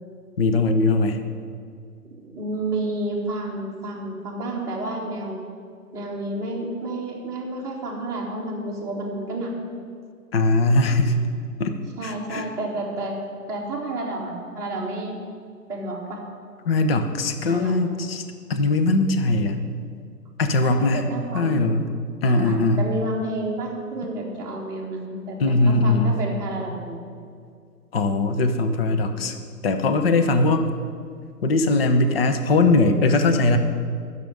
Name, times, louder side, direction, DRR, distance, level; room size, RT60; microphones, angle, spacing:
voice 1, 0.4-1.2 10.3-11.2 11.6-11.7 12.0-12.5 16.7-18.2 18.5-19.6 20.4-21.0 21.3-21.9 22.2-22.9 25.4-26.2 27.9-29.4 29.6-30.7 31.4-33.6, left 2 dB, 35° left, 7 dB, 0.8 m, -20 dB
voice 2, 2.1-5.4 5.9-9.5 11.1-11.2 12.0-13.2 13.5-15.2 15.7-16.2 17.5-17.8 20.6-21.7 22.2-27.0, right 1 dB, 5° right, -6 dB, 1.5 m, -30 dB
10.0 x 6.9 x 9.2 m, 2.3 s
hypercardioid pair, 145°, 48 cm